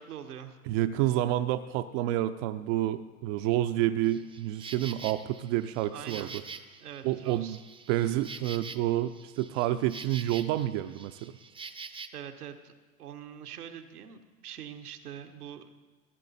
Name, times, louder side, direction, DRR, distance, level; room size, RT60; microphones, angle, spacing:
voice 1, 0.0-0.6 5.9-6.3 6.8-7.6 12.1-12.7 13.0-15.7, right 9 dB, 85° right, 6 dB, 1.3 m, -43 dB
voice 2, 0.7-6.3 7.0-7.6 7.9-11.3, right 14 dB, 55° right, 10 dB, 0.7 m, -29 dB
Insect, 4.0-12.1, right 5 dB, 10° right, 0.6 m, -45 dB
15.5 x 10.5 x 4.2 m, 1.3 s
hypercardioid pair, 95°, 44 cm